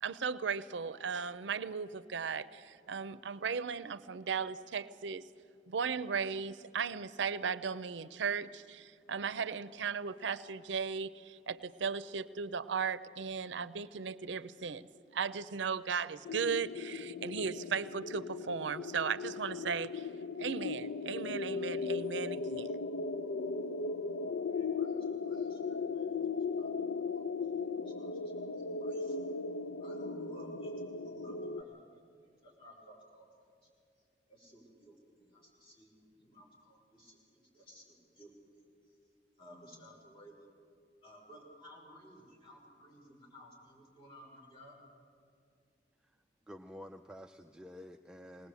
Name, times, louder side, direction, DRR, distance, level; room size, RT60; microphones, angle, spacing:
voice 1, 0.0-5.3 5.7-14.9 15.1-20.1 20.4-22.7, right 6 dB, 85° right, 15 dB, 0.6 m, -36 dB
sound 1, 16.2-31.6, left 4 dB, 85° left, 0.5 m, -37 dB
voice 2, 24.5-26.2 26.6-27.0 27.8-28.1 28.6-29.2 29.8-30.7 31.0-31.7 32.4-33.3 33.6-33.7 34.3-38.3 39.4-40.5 41.0-44.8, equal, 30° left, -3 dB, 5.5 m, -56 dB
voice 3, 46.5-48.5, left 1 dB, 5° right, 4 dB, 0.4 m, -50 dB
20.0 x 19.5 x 8.2 m, 2.4 s
head